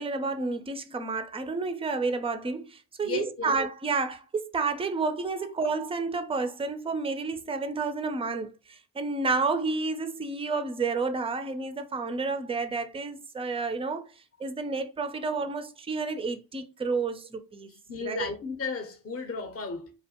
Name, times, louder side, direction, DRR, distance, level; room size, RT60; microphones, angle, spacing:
voice 1, 0.0-14.1 14.4-17.7 18.0-18.3, right 4 dB, 15° right, 0.3 m, -30 dB
voice 2, 3.0-3.6 17.7-19.9, left 4 dB, 30° left, 0.7 m, -35 dB
2.4 x 2.1 x 2.8 m
hypercardioid pair, 45°, 47 cm